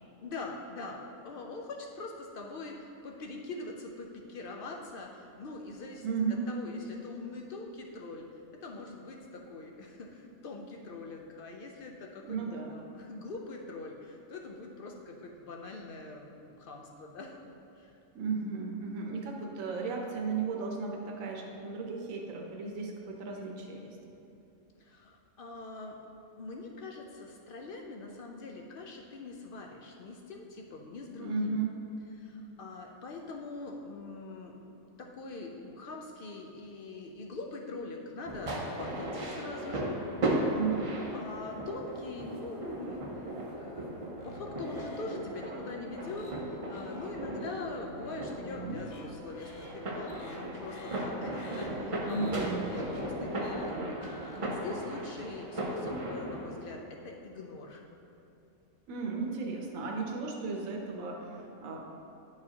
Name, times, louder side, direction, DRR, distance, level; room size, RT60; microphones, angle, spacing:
voice 1, 0.2-18.0 24.8-26.0 26.4-31.5 32.1-40.0 41.1-43.1 43.6-54.0 54.4-57.8, left 3 dB, 75° left, 1 dB, 0.5 m, -43 dB
voice 2, 6.0-6.5 12.3-12.7 18.1-24.0 31.2-31.8 40.5-40.9 48.4-48.8 52.1-52.7 58.9-61.8, right 4 dB, 70° right, 0 dB, 1.2 m, -35 dB
sound 1, 38.3-56.7, right 1 dB, 40° right, 0.4 m, -36 dB
sound 2, 44.2-55.0, left 2 dB, 55° left, 0.8 m, -49 dB
9.5 x 4.8 x 2.8 m, 2.9 s
omnidirectional pair, 1.5 m